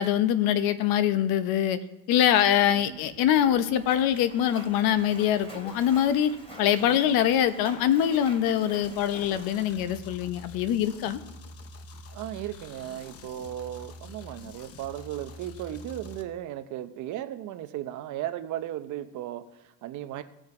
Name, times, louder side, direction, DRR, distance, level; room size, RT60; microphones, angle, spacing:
voice 1, 0.0-1.8 2.1-6.3 6.6-11.2, left 10 dB, 60° left, 12 dB, 0.9 m, -24 dB
Splash splatter, 2.9-10.8, equal, 15° left, 2.7 m, -47 dB
voice 2, 6.8-7.2 12.1-20.2, right 12 dB, 50° right, 10 dB, 0.8 m, -36 dB
sound 1, 8.8-16.2, left 2 dB, 35° left, 0.9 m, -46 dB
17.5 x 6.4 x 4.9 m, 0.91 s
cardioid pair, 135°, 39 cm